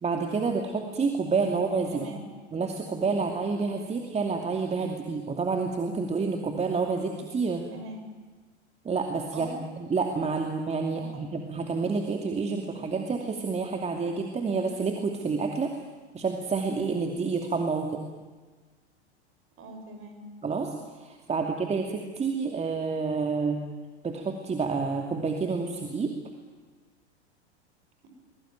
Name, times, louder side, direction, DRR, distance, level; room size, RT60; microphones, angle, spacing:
voice 1, 0.0-2.1 2.5-7.7 8.8-15.7 16.1-18.0 20.4-23.6 24.0-26.1, right 4 dB, 20° right, 3 dB, 2.5 m, -29 dB
voice 2, 1.9-2.3 7.7-8.1 9.3-9.5 10.9-11.1 19.6-20.2, right 3 dB, 40° right, 6 dB, 6.5 m, -41 dB
23.5 x 22.0 x 9.2 m, 1.4 s
hypercardioid pair, 95°, 34 cm